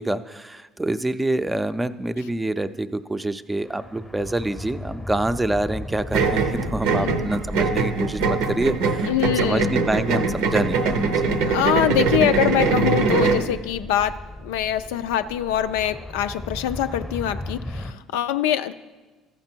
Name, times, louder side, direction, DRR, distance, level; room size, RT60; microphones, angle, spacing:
voice 1, 0.0-9.1 9.4-11.3, right 1 dB, 15° right, 11 dB, 0.5 m, -26 dB
sound 1, 3.6-17.9, left 1 dB, 10° left, 0.8 m, -36 dB
sound 2, 6.1-13.5, right 4 dB, 80° right, 0.8 m, -22 dB
voice 2, 6.9-7.3 9.0-9.8 11.4-18.7, left 10 dB, 85° left, 10 dB, 0.4 m, -24 dB
14.0 x 5.9 x 4.5 m, 1.2 s
supercardioid pair, 75°, 0 cm